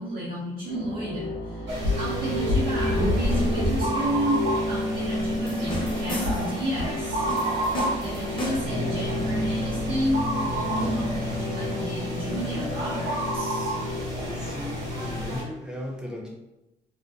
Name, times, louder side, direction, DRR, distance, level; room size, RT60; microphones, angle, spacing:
voice 1, 0.0-13.8, equal, 50° right, -7 dB, 0.6 m, -32 dB
sound 1, 0.7-15.2, left 1 dB, 45° left, 0.6 m, -31 dB
sound 2, 1.7-15.4, equal, 85° right, 0.9 m, -30 dB
sound 3, 5.5-6.6 7.3-8.8, left 1 dB, 25° left, 0.9 m, -34 dB
voice 2, 14.2-16.3, equal, 5° right, -3 dB, 0.7 m, -36 dB
2.5 x 2.2 x 2.4 m, 0.97 s
cardioid pair, 80°, 19 cm